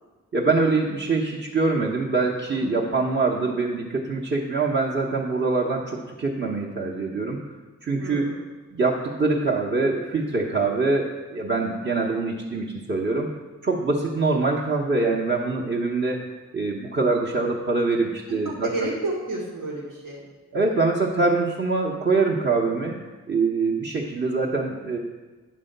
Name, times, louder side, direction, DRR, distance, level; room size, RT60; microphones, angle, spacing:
voice 1, 0.3-7.4 7.8-8.2 8.7-13.3 13.6-16.2 16.5-18.7 20.5-23.0 23.3-25.0, right 3 dB, 40° right, -5 dB, 1.0 m, -24 dB
voice 2, 2.5-2.8 8.0-8.4 18.4-20.2, right 2 dB, 85° right, -3 dB, 1.6 m, -31 dB
10.0 x 3.4 x 6.6 m, 1.3 s
cardioid pair, 60°, 32 cm